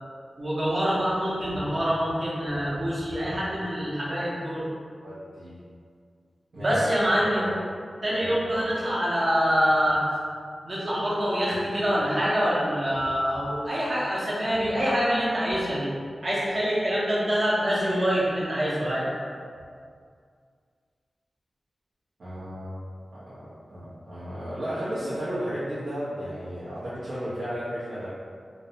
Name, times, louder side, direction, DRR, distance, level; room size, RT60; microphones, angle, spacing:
voice 1, 0.4-4.6 6.6-7.4 8.0-10.0 10.6-15.9 16.2-19.1, equal, 45° right, -7 dB, 0.7 m, -25 dB
voice 2, 5.0-5.5 6.5-6.8 7.3-7.5 8.2-8.7 22.2-22.8 23.1-28.1, equal, 75° right, -12 dB, 0.6 m, -34 dB
2.6 x 2.1 x 2.7 m, 2.2 s
wide cardioid pair, 85°, 0 cm